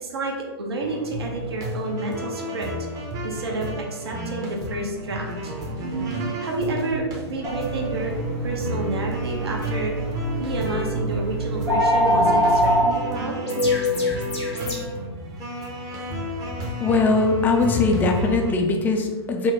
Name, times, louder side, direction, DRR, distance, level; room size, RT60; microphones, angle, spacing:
voice 1, 0.0-2.7 3.2-5.5 6.2-8.1 8.4-9.9 10.4-13.4, right 2 dB, 70° right, 0 dB, 0.9 m, -29 dB
sound 1, 0.8-18.5, equal, 25° right, 0.7 m, -33 dB
sound 2, 5.8-14.8, left 2 dB, 85° left, 1.2 m, -31 dB
sound 3, 7.4-12.8, right 1 dB, 85° right, 1.3 m, -24 dB
voice 2, 16.8-19.5, left 3 dB, 15° left, 3 dB, 0.4 m, -20 dB
4.4 x 2.2 x 3.6 m, 1.3 s
figure-of-eight pair, 115°, 14 cm